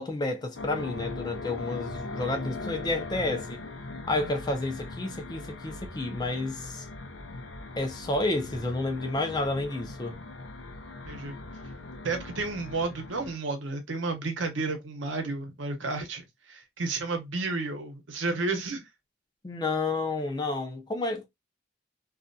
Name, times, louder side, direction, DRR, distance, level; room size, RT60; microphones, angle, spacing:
voice 1, 0.0-3.7 4.1-6.9 7.8-10.2 19.4-21.3, left 2 dB, 20° left, 0.4 m, -30 dB
sound 1, 0.5-13.4, left 2 dB, 75° left, 0.5 m, -40 dB
voice 2, 11.1-11.4 12.0-18.8, right 3 dB, 80° right, 0.8 m, -32 dB
2.4 x 2.2 x 2.5 m
head